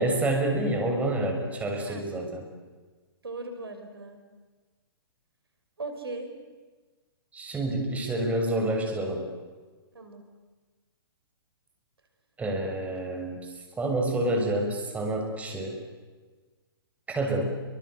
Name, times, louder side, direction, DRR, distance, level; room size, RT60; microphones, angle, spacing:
voice 1, 0.0-2.4 7.3-9.3 12.4-15.8 17.1-17.6, right 1 dB, 10° right, 2 dB, 6.5 m, -28 dB
voice 2, 3.2-4.2 5.8-6.3 9.9-10.2 13.1-13.2, right 2 dB, 75° right, 7 dB, 5.5 m, -38 dB
29.0 x 25.0 x 8.3 m, 1.4 s
figure-of-eight pair, 120°, 13 cm